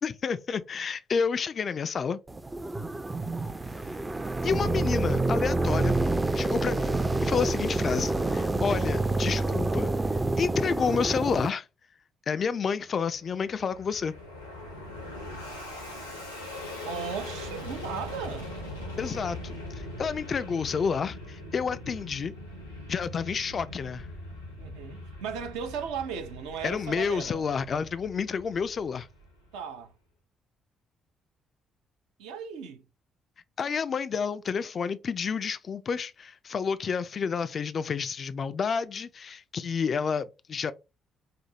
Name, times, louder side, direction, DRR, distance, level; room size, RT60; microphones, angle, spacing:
voice 1, 0.0-2.2 4.4-6.0 6.3-7.0 7.2-9.9 10.4-11.7 12.3-14.1 19.0-22.3 22.9-24.1 26.6-29.1 33.6-40.7, left 6 dB, 45° left, 0.3 m, -30 dB
sound 1, 2.3-11.5, right 2 dB, 20° right, 0.4 m, -27 dB
Fixed-wing aircraft airplane, 13.1-29.6, left 1 dB, 90° left, 0.7 m, -41 dB
voice 2, 16.8-18.5 24.6-27.5 29.5-29.9 32.2-32.8, right 6 dB, 65° right, 0.6 m, -36 dB
5.0 x 2.0 x 2.8 m
figure-of-eight pair, 40°, 0 cm